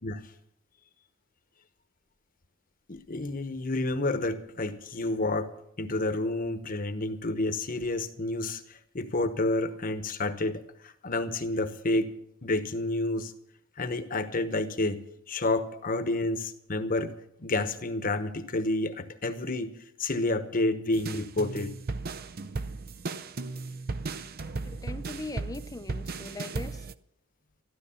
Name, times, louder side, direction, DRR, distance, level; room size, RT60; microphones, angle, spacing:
voice 1, 2.9-5.5 5.8-12.1 12.4-13.3 13.8-19.7 20.0-21.7 24.7-24.9, left 2 dB, 40° left, 1.1 m, -30 dB
sound 1, 20.9-26.9, right 3 dB, 45° right, 0.6 m, -36 dB
voice 2, 24.8-26.9, left 2 dB, 15° left, 0.6 m, -40 dB
13.0 x 12.5 x 7.1 m
head